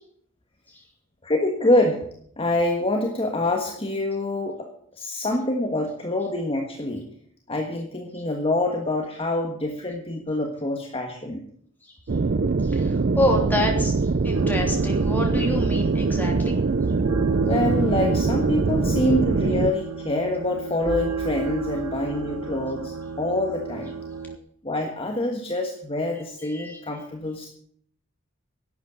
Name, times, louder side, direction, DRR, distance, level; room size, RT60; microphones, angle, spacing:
voice 1, 1.2-2.0 2.4-4.7 5.0-7.1 7.5-11.4 17.4-22.9 23.2-23.9 24.6-27.5, left 1 dB, 25° left, 2 dB, 1.5 m, -26 dB
sound 1, 12.1-19.7, right 3 dB, 50° right, 0.5 m, -23 dB
voice 2, 12.6-13.9 14.2-16.6 26.5-26.8, left 1 dB, 10° left, 0 dB, 3.2 m, -27 dB
sound 2, 14.3-24.4, right 5 dB, 85° right, 1.3 m, -32 dB
12.0 x 8.3 x 9.3 m, 0.64 s
head